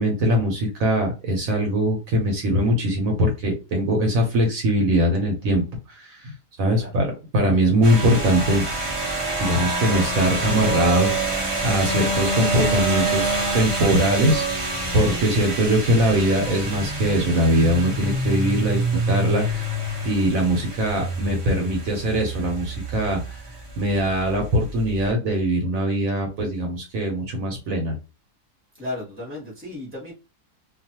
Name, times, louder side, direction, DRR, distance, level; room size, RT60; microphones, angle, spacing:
voice 1, 0.0-5.6 5.9-6.3 6.6-8.6 9.4-11.1 11.6-14.4 14.9-18.8 19.1-19.6 20.0-23.4 23.8-27.9, equal, 65° right, 1.1 m, -21 dB
sound 1, 7.8-25.1, right 2 dB, 45° right, 0.4 m, -26 dB
voice 2, 28.8-30.1, left 2 dB, 10° left, 0.9 m, -34 dB
2.6 x 2.3 x 2.8 m
omnidirectional pair, 1.7 m